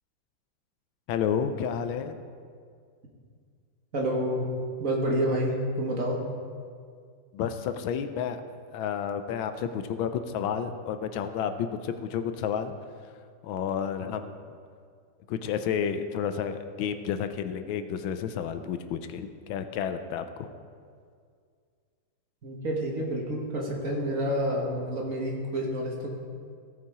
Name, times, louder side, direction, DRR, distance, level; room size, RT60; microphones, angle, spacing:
voice 1, 1.1-2.2 7.3-8.4 8.7-12.7 13.4-14.4 15.3-20.5, left 8 dB, 80° left, 9 dB, 1.4 m, -31 dB
voice 2, 3.9-4.5 4.8-6.2 22.4-26.1, equal, 45° right, -1 dB, 1.7 m, -28 dB
16.5 x 5.8 x 4.8 m, 2.1 s
omnidirectional pair, 2.2 m